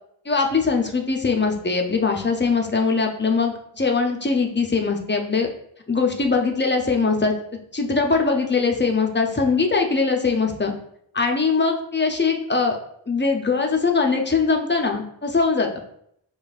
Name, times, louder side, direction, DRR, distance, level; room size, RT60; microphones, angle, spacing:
voice 1, 0.3-5.5 5.9-7.3 7.7-10.7 11.1-12.8 13.1-15.7, left 4 dB, 25° left, 2 dB, 0.5 m, -21 dB
5.1 x 2.3 x 2.4 m, 0.70 s
wide cardioid pair, 40°, 47 cm